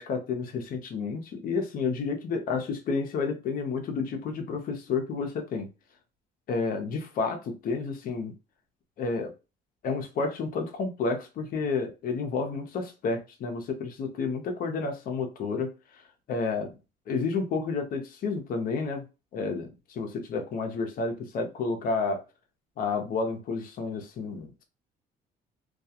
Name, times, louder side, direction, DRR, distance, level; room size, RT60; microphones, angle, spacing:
voice 1, 0.0-5.7 6.5-8.3 9.0-9.3 9.8-15.7 16.3-16.7 17.1-19.1 19.3-22.2 22.8-24.5, left 4 dB, 55° left, 0.7 m, -30 dB
2.3 x 2.2 x 2.8 m
cardioid pair, 110°, 17 cm